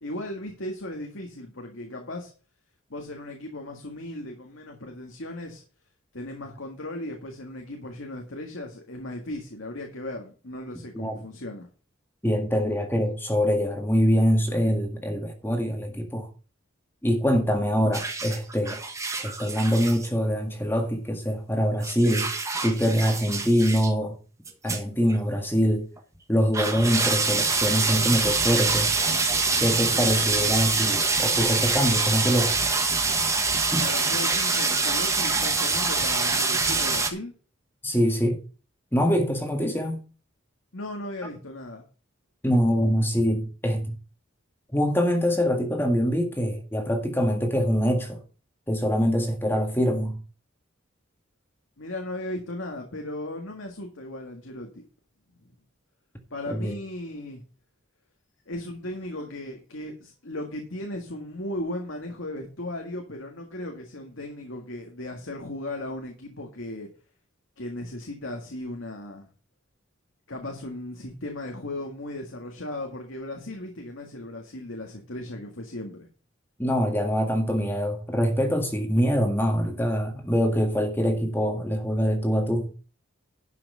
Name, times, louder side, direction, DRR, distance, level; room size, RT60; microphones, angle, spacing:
voice 1, 0.0-2.3 2.9-5.6 6.1-11.7 33.8-37.3 40.7-41.8 51.8-54.8 56.3-57.4 58.5-66.9 67.6-69.3 70.3-76.1, left 1 dB, 75° left, 1.9 m, -36 dB
voice 2, 12.2-16.3 17.0-18.8 19.1-22.3 22.6-24.2 24.6-25.9 26.3-28.9 29.6-32.7 33.7-33.8 37.8-38.4 38.9-40.0 42.4-44.0 44.7-48.2 48.7-50.2 56.5-56.7 76.6-82.7, equal, 10° left, 1.7 m, -24 dB
sound 1, 17.9-20.1 21.8-23.9 24.4-24.8 25.1-25.2 26.0-26.1 26.5-37.1, right 4 dB, 15° right, 1.3 m, -25 dB
11.5 x 6.0 x 5.6 m
head